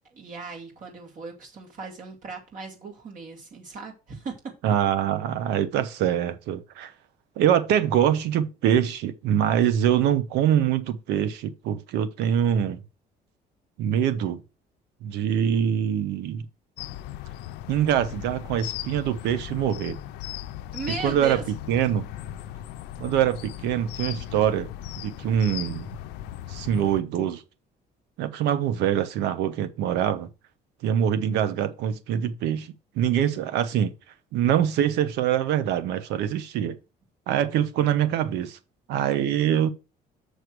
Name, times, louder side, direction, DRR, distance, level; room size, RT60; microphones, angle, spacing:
voice 1, 0.1-4.3 4.6-4.7 20.7-21.4, right 4 dB, 50° right, 2.6 m, -37 dB
voice 2, 4.6-6.9 7.4-12.8 13.8-14.4 15.0-16.5 17.7-20.0 21.0-21.4 21.7-22.1 23.0-24.7 25.0-25.9 26.5-27.4 28.2-30.3 30.8-33.9 34.3-36.8 37.3-38.6 38.9-39.7, right 10 dB, 85° right, 1.0 m, -24 dB
sound 1, 16.8-27.0, left 13 dB, 90° left, 0.6 m, -37 dB
6.6 x 6.4 x 4.6 m
cardioid pair, 110°, 17 cm